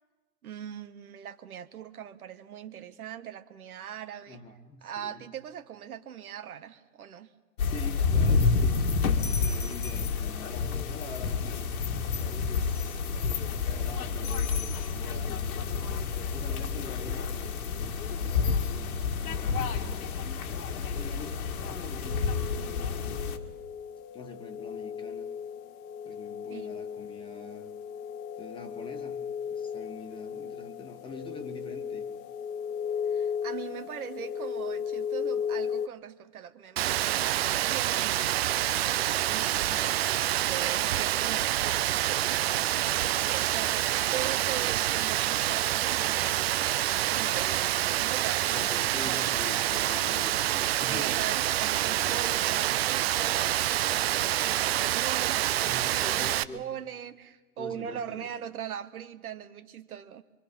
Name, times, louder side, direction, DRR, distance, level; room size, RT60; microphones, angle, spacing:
voice 1, 0.4-4.4 4.8-7.3 26.5-26.8 33.1-38.4 39.2-39.7 40.2-48.6 50.8-60.2, right 9 dB, 75° right, 10 dB, 1.5 m, -40 dB
voice 2, 4.3-5.2 7.6-11.6 12.2-20.3 20.9-23.2 24.1-25.3 26.0-27.7 28.4-29.2 29.5-32.0 39.6-40.0 48.5-51.1 51.8-52.4 55.6-56.6 57.6-58.3, left 3 dB, 10° left, 5 dB, 1.6 m, -45 dB
sound 1, 7.6-23.4, left 5 dB, 75° left, 1.9 m, -29 dB
sound 2, 22.0-35.9, left 7 dB, 25° left, 0.9 m, -36 dB
Rain, 36.8-56.4, right 13 dB, 45° right, 0.6 m, -27 dB
24.5 x 24.5 x 5.5 m, 1.2 s
hypercardioid pair, 140°, 44 cm